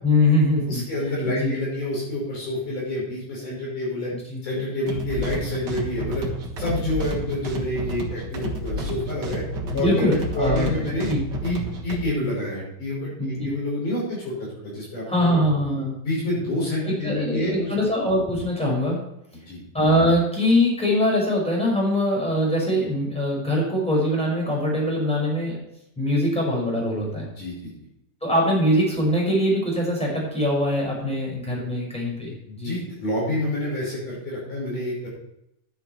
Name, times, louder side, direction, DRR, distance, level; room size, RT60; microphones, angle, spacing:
voice 1, 0.0-0.8 1.3-1.5 4.3-4.4 9.7-11.2 13.2-13.5 15.1-16.0 16.8-19.0 19.7-25.6 26.0-27.3 28.2-32.7, left 1 dB, ahead, -3 dB, 5.0 m, -22 dB
voice 2, 0.6-4.1 4.4-6.3 6.6-9.4 9.7-11.1 11.4-15.4 16.0-17.7 19.5-19.6 27.4-27.7 31.0-31.1 32.5-35.1, left 1 dB, 55° left, -5 dB, 7.2 m, -28 dB
sound 1, 4.9-12.0, right 1 dB, 75° right, 0.9 m, -31 dB
11.5 x 10.0 x 4.4 m, 0.80 s
omnidirectional pair, 4.5 m